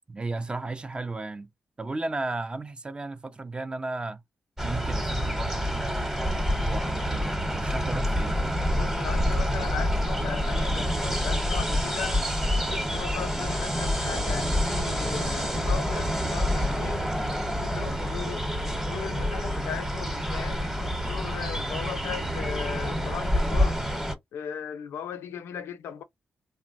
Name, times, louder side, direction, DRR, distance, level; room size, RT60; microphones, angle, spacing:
voice 1, 0.1-1.5 1.8-4.2 4.6-8.4, right 3 dB, 25° right, 0.4 m, -34 dB
sound 1, 4.6-24.1, equal, 10° right, 0.9 m, -27 dB
voice 2, 8.7-12.2 12.5-17.1 17.5-18.5 18.9-23.8 24.3-26.0, left 8 dB, 90° left, 0.5 m, -38 dB
3.1 x 2.1 x 2.5 m
cardioid pair, 75°, 4 cm